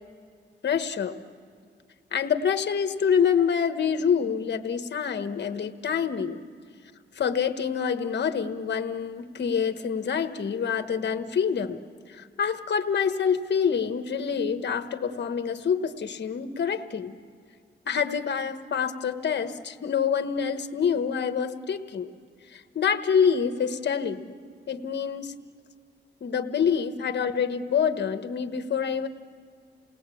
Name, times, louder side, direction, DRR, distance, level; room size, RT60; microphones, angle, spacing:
voice 1, 0.6-1.1 2.1-6.4 7.1-11.8 12.1-17.1 17.9-22.1 22.5-24.4 24.7-25.3 26.2-29.1, left 7 dB, 65° left, 8 dB, 1.4 m, -26 dB
29.0 x 19.0 x 8.5 m, 2.2 s
cardioid pair, 85°, 19 cm